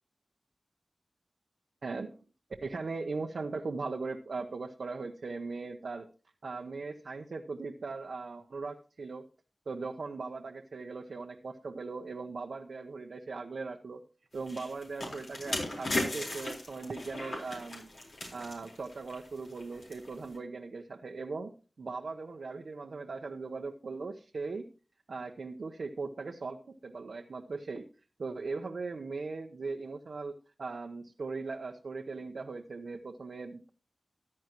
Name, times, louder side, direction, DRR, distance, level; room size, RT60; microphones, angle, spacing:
voice 1, 1.8-2.2 2.6-6.1 6.4-9.3 9.7-14.0 14.3-17.9 18.3-21.5 21.8-24.7 25.1-27.9 28.2-33.7, right 4 dB, 85° right, 3 dB, 0.8 m, -39 dB
sound 1, 14.4-20.4, left 2 dB, 85° left, 4.2 m, -37 dB
14.5 x 10.5 x 3.0 m, 0.35 s
cardioid pair, 50°, 0 cm